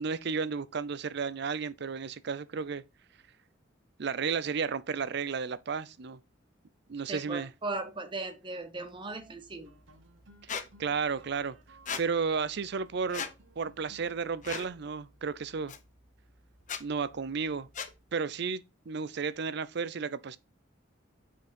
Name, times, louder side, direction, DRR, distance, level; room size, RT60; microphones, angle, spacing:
voice 1, 0.0-2.8 4.0-6.2 6.9-7.5 10.4-11.6 12.0-13.3 13.6-15.7 16.8-17.7 18.1-20.4, right 5 dB, 60° right, 0.5 m, -33 dB
voice 2, 7.1-9.7, right 3 dB, 25° right, 1.1 m, -37 dB
sound 1, 8.7-18.3, right 1 dB, 80° right, 1.3 m, -60 dB
Squeak, 10.5-10.7 11.9-12.0 13.1-13.3 14.4-14.7 15.7-15.8 16.6-16.8 17.7-17.9, left 6 dB, 40° left, 0.7 m, -36 dB
6.0 x 4.7 x 5.2 m
head